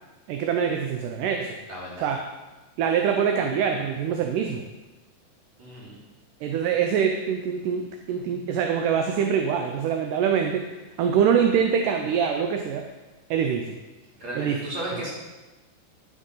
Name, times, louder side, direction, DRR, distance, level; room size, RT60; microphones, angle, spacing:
voice 1, 0.3-1.6 2.0-2.2 2.8-4.6 6.4-10.7 11.0-12.9 13.3-13.8 14.4-14.6 14.9-15.0, right 7 dB, 75° right, 4 dB, 2.1 m, -24 dB
voice 2, 1.7-2.1 5.6-6.0 14.2-15.1, right 1 dB, 35° right, -6 dB, 3.9 m, -34 dB
11.0 x 6.4 x 5.6 m, 1.1 s
omnidirectional pair, 4.0 m